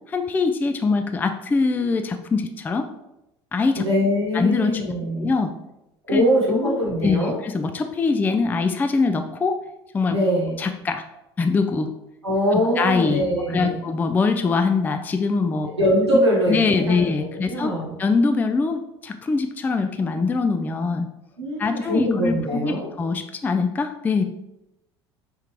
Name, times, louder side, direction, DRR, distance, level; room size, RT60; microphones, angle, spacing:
voice 1, 0.1-2.9 3.5-3.8 4.3-4.7 5.2-5.5 6.1-6.2 6.6-6.8 7.0-9.6 9.9-10.2 10.6-11.0 11.4-11.9 12.5-13.2 13.5-15.7 16.5-17.7 18.0-21.1 21.6-24.2, left 4 dB, 15° left, 7 dB, 0.3 m, -23 dB
voice 2, 3.8-5.3 6.1-7.4 10.1-10.6 12.2-13.8 15.7-17.9 21.4-22.9, equal, 85° right, -4 dB, 1.0 m, -22 dB
4.4 x 3.6 x 3.0 m, 0.90 s
figure-of-eight pair, 70°, 14 cm